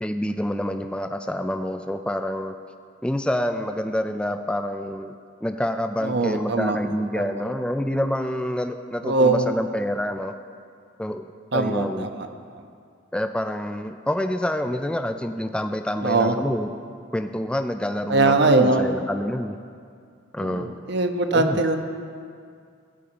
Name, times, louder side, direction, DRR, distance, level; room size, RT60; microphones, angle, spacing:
voice 1, 0.0-2.5 3.0-5.1 5.4-10.3 11.0-12.1 13.1-16.7 17.1-19.6 20.3-20.8 21.3-21.6, left 1 dB, 5° left, 7 dB, 0.3 m, -27 dB
voice 2, 6.0-6.8 7.1-7.3 9.0-9.5 11.5-12.3 12.5-12.7 16.0-16.4 18.1-18.8 20.4-21.8, right 3 dB, 55° right, 6 dB, 0.7 m, -21 dB
14.0 x 5.0 x 8.6 m, 2.3 s
head